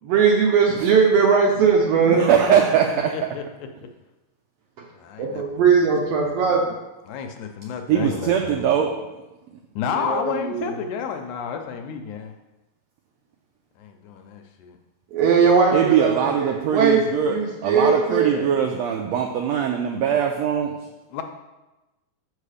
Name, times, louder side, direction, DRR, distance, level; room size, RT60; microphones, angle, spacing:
voice 1, 0.0-2.3 5.2-6.7 9.9-10.7 15.1-18.4, right 5 dB, 70° right, -1 dB, 1.6 m, -19 dB
voice 2, 2.1-3.1 7.9-8.9 15.7-20.8, right 8 dB, 85° right, 2 dB, 1.5 m, -21 dB
voice 3, 2.9-3.4 5.0-5.9 7.1-8.7 9.8-12.3 13.8-14.8 21.1-21.2, left 7 dB, 80° left, 6 dB, 2.0 m, -31 dB
6.6 x 4.8 x 4.9 m, 1.0 s
omnidirectional pair, 3.6 m